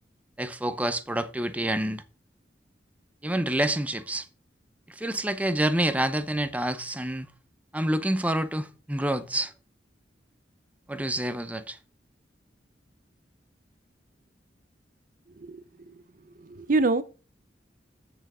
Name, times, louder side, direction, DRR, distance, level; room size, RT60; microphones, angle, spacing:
voice 1, 0.4-2.0 3.2-4.3 4.9-7.3 7.7-9.5 10.9-11.8, right 1 dB, 10° right, 0.7 m, -28 dB
voice 2, 15.4-16.0 16.4-17.0, right 3 dB, 50° right, 0.6 m, -26 dB
6.9 x 6.4 x 6.0 m
head